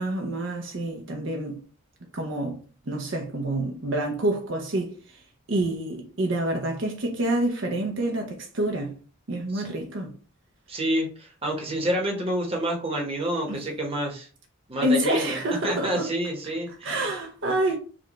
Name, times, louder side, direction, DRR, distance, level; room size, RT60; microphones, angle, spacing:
voice 1, 0.0-1.6 2.1-2.6 2.9-4.9 5.5-9.0 9.3-10.1 13.5-13.6 14.8-16.1 16.8-17.8, right 1 dB, 60° right, 0.6 m, -27 dB
voice 2, 10.7-14.3 14.7-17.1, right 1 dB, 25° right, 1.0 m, -28 dB
5.0 x 2.3 x 3.0 m
head